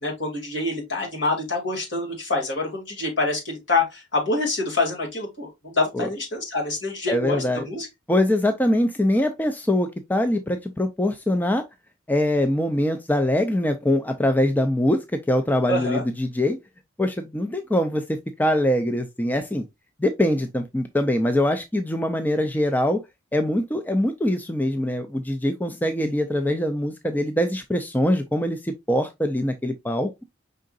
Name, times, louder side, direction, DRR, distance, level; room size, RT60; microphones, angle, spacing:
voice 1, 0.0-7.9 15.7-16.0, left 2 dB, 65° left, 2.4 m, -26 dB
voice 2, 7.1-7.6 8.1-11.6 12.1-16.6 17.0-18.0 18.4-19.7 20.0-23.0 23.3-30.1, left 1 dB, 10° left, 0.4 m, -23 dB
5.5 x 3.7 x 2.4 m
head